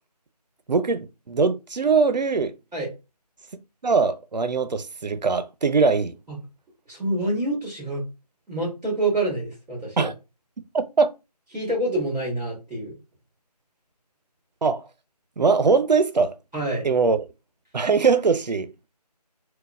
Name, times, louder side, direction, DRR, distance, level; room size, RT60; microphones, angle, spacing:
voice 1, 0.7-2.5 3.8-6.1 10.0-10.1 10.7-11.1 14.6-14.9 15.4-16.3 16.8-17.2 17.7-18.7, right 4 dB, 85° right, 0.6 m, -21 dB
voice 2, 6.9-8.0 8.5-10.1 11.5-13.0 16.5-16.8, right 2 dB, 5° right, 1.1 m, -27 dB
3.9 x 2.3 x 2.2 m
figure-of-eight pair, 170°, 21 cm